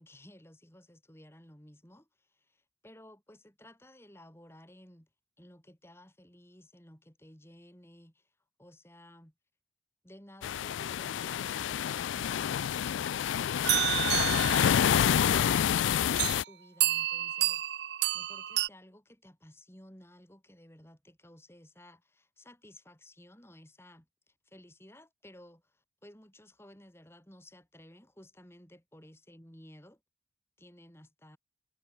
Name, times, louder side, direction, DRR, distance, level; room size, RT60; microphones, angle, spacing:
voice 1, 0.0-5.1 5.4-8.3 8.6-9.3 10.0-17.6 18.1-30.0 30.6-31.4, left 1 dB, 15° left, 5.9 m, -55 dB
sound 1, 10.4-16.4, left 9 dB, 85° left, 0.3 m, -28 dB
sound 2, 13.6-15.3 16.2-16.4 16.8-18.7, right 14 dB, 60° right, 0.5 m, -30 dB
head